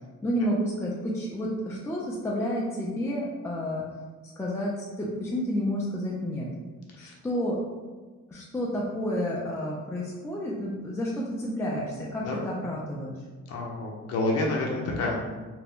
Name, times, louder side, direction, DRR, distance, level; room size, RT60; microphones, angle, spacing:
voice 1, 0.2-3.8 4.4-6.5 7.0-7.6 8.3-13.1, equal, 10° left, -5 dB, 0.4 m, -30 dB
voice 2, 13.5-15.2, left 2 dB, 55° left, -2 dB, 0.6 m, -28 dB
2.5 x 2.1 x 3.4 m, 1.3 s
cardioid pair, 90°, 30 cm